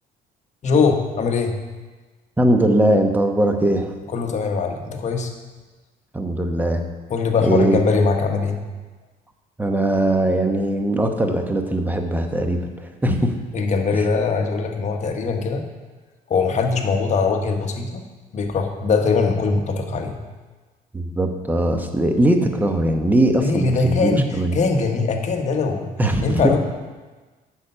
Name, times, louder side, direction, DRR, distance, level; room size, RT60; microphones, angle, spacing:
voice 1, 0.6-1.5 4.1-5.3 7.1-8.6 13.5-15.6 16.3-18.0 18.3-20.2 23.4-25.9 26.2-26.6, left 4 dB, 45° left, 4 dB, 1.2 m, -21 dB
voice 2, 2.4-3.9 6.1-6.8 7.4-7.8 9.6-13.3 20.9-24.6 26.0-26.5, right 1 dB, 10° right, 5 dB, 1.0 m, -20 dB
8.5 x 6.5 x 5.6 m, 1.3 s
cardioid pair, 110°, 17 cm